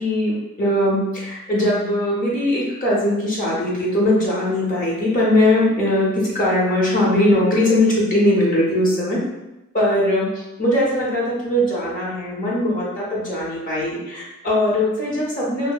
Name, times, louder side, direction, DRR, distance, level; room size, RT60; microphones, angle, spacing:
voice 1, 0.0-9.2 9.7-10.3 10.6-15.7, left 1 dB, 40° left, -5 dB, 0.6 m, -20 dB
2.7 x 2.1 x 2.2 m, 0.98 s
head